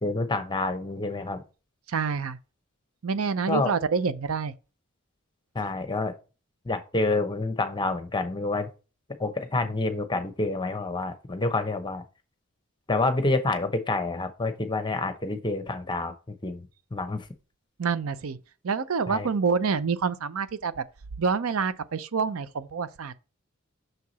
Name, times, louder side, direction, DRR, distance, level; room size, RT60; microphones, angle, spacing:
voice 1, 0.0-1.4 3.5-3.7 5.5-6.1 6.6-8.7 9.2-12.0 12.9-17.2 19.1-19.3, left 2 dB, 20° left, 0.8 m, -28 dB
voice 2, 1.9-2.4 3.0-4.5 17.8-18.4 18.6-20.8 21.2-23.2, right 5 dB, 80° right, 0.6 m, -27 dB
6.4 x 4.7 x 4.1 m
head